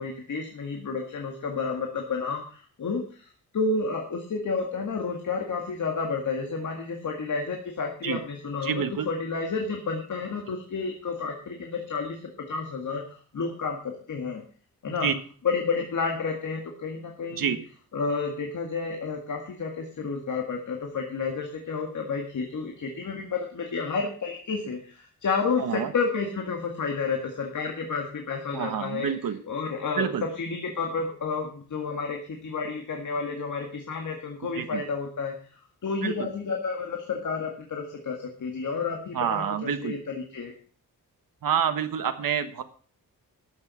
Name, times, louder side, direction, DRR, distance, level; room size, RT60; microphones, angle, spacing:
voice 1, 0.0-14.4 14.8-15.1 15.4-17.6 17.9-29.1 29.5-40.5, left 4 dB, 60° left, 2 dB, 2.0 m, -31 dB
voice 2, 8.6-9.1 15.0-15.1 17.3-17.6 25.6-25.9 28.5-29.4 30.0-30.2 34.5-34.8 36.0-36.1 39.1-40.0 41.4-42.6, right 8 dB, 70° right, 8 dB, 1.4 m, -27 dB
12.5 x 7.4 x 6.2 m, 0.43 s
wide cardioid pair, 170°, 35 cm